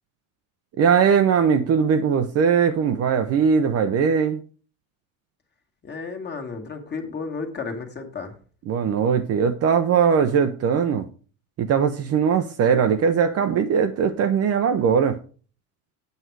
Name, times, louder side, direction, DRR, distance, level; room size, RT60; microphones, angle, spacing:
voice 1, 0.8-4.4 8.7-11.0 11.6-15.2, right 6 dB, 35° right, 0.8 m, -20 dB
voice 2, 5.8-8.4, left 4 dB, 25° left, 1.8 m, -33 dB
8.1 x 7.9 x 4.7 m
supercardioid pair, 135°, 43 cm